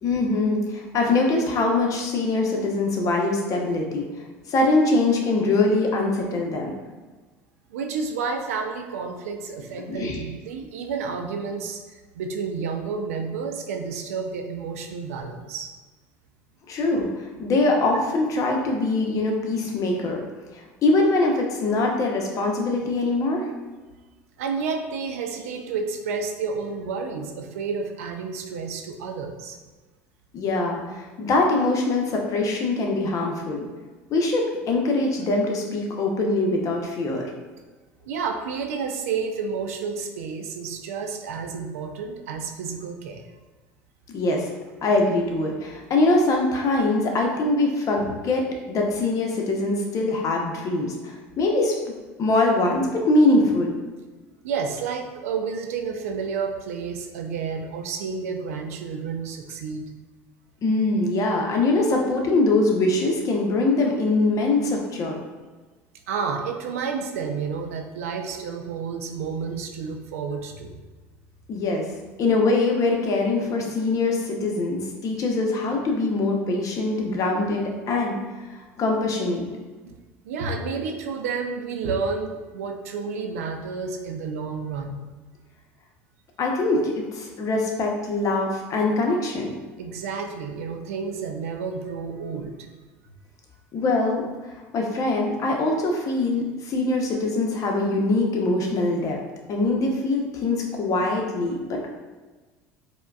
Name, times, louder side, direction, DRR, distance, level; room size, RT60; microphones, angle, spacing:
voice 1, 0.0-4.1 4.5-6.7 9.9-10.2 16.7-20.2 20.5-23.5 30.3-33.6 34.1-37.3 44.1-44.5 44.8-51.7 52.2-53.7 60.6-65.2 71.5-71.9 72.2-78.1 78.8-79.5 86.4-89.5 93.7-99.2 99.5-101.9, left 2 dB, 45° left, 1 dB, 0.7 m, -23 dB
voice 2, 7.7-15.7 24.4-29.6 38.1-43.3 47.9-48.1 54.4-59.8 66.1-70.8 79.8-79.9 80.2-85.1 89.8-92.7, right 5 dB, 85° right, 4 dB, 0.4 m, -30 dB
4.5 x 2.2 x 2.3 m, 1.3 s
hypercardioid pair, 80°, 8 cm